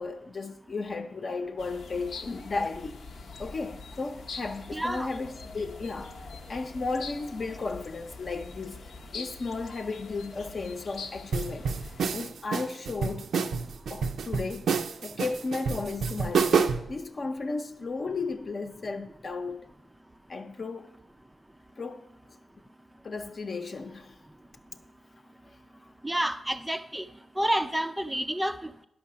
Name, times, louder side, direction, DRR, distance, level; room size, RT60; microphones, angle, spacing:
voice 1, 0.0-3.0 3.4-6.1 6.5-8.9 9.1-11.7 12.1-13.3 13.9-14.7 15.0-19.7 20.3-20.9 21.8-22.1 23.0-24.2, left 3 dB, 50° left, 0.8 m, -34 dB
sound 1, 1.6-12.2, left 4 dB, 75° left, 0.8 m, -44 dB
voice 2, 4.7-5.1 26.0-27.1 27.4-28.8, right 1 dB, 10° right, 0.4 m, -29 dB
sound 2, 11.3-16.9, right 5 dB, 80° right, 0.5 m, -28 dB
10.5 x 5.9 x 6.8 m
cardioid pair, 95°, 0 cm